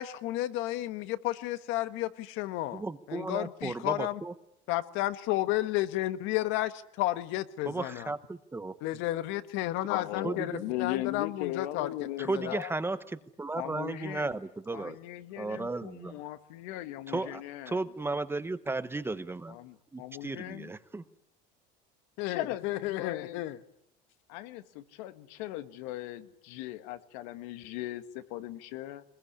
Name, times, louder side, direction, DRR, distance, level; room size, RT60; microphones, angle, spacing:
voice 1, 0.0-2.8 3.1-4.2 4.7-6.7 7.0-8.1 8.8-11.9 12.2-12.6 22.2-23.6, left 15 dB, 70° left, 12 dB, 1.5 m, -32 dB
voice 2, 2.7-4.3 7.6-8.7 10.2-10.6 12.2-15.0 15.4-16.2 17.1-19.5 19.9-21.0, right 3 dB, 10° right, 13 dB, 1.0 m, -35 dB
voice 3, 9.8-12.7 13.6-14.4 14.7-17.8 19.5-20.7 22.3-23.4 24.3-29.0, left 15 dB, 85° left, 10 dB, 1.8 m, -39 dB
22.0 x 21.0 x 10.0 m, 0.79 s
cardioid pair, 135°, 21 cm